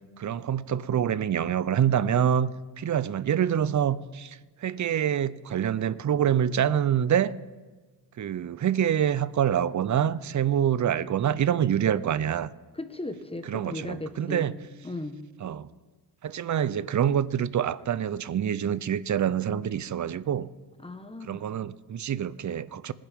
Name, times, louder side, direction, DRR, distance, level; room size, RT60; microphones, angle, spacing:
voice 1, 0.2-2.5 2.8-7.3 8.2-12.5 13.4-14.5 15.4-15.7 16.2-20.5 21.2-22.9, right 9 dB, 35° right, 0.7 m, -26 dB
voice 2, 12.8-14.5 14.8-15.2 20.8-21.4, left 2 dB, 10° left, 1.4 m, -36 dB
26.0 x 10.5 x 3.7 m
supercardioid pair, 60°, 49 cm